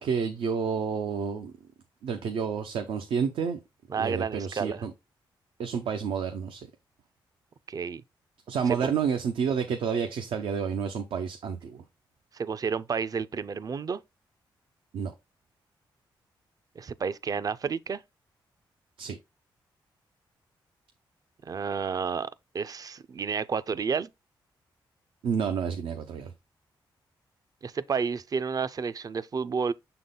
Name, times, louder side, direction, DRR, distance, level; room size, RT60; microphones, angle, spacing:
voice 1, 0.0-1.5 2.0-3.6 4.0-4.9 5.6-6.7 8.5-11.8 14.9-15.1 19.0-19.2 25.2-26.3, right 6 dB, 85° right, 0.7 m, -29 dB
voice 2, 3.9-4.9 7.7-8.0 8.6-8.8 12.3-14.0 16.8-18.0 21.4-24.1 27.6-29.7, right 6 dB, 45° right, 0.5 m, -31 dB
6.6 x 3.9 x 3.8 m
cardioid pair, 70°, 9 cm